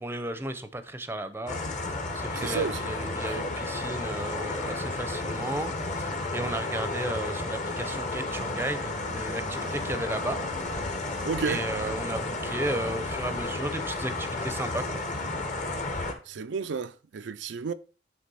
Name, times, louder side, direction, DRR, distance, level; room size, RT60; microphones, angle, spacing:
voice 1, 0.0-1.6 2.1-10.4 11.4-15.0, right 1 dB, 15° right, 0.6 m, -34 dB
sound 1, 1.5-16.1, left 2 dB, 45° left, 1.1 m, -32 dB
voice 2, 2.4-2.9 3.2-3.4 11.2-11.6 15.9-17.7, right 5 dB, 80° right, 0.4 m, -32 dB
8.3 x 3.4 x 5.4 m
head